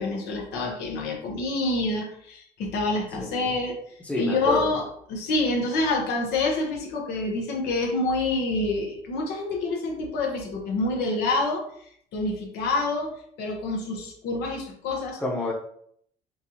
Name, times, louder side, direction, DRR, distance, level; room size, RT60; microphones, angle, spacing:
voice 1, 0.0-3.8 4.2-11.6 12.1-13.1 13.4-15.2, left 2 dB, 80° left, 0 dB, 1.0 m, -27 dB
voice 2, 3.2-3.5 4.0-4.7 15.2-15.5, left 2 dB, 10° left, -2 dB, 0.9 m, -29 dB
4.5 x 2.4 x 2.8 m, 0.66 s
cardioid pair, 110°, 17 cm